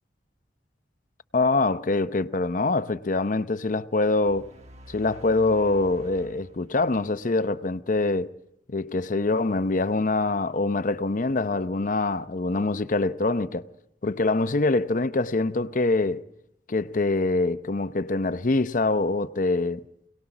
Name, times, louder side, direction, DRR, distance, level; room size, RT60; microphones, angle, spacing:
voice 1, 1.3-4.5 4.9-8.3 8.7-13.7 14.0-16.2 16.7-19.9, left 3 dB, 45° left, 0.7 m, -24 dB
sound 1, 4.2-7.6, right 1 dB, 40° right, 1.2 m, -48 dB
26.0 x 18.5 x 6.0 m
head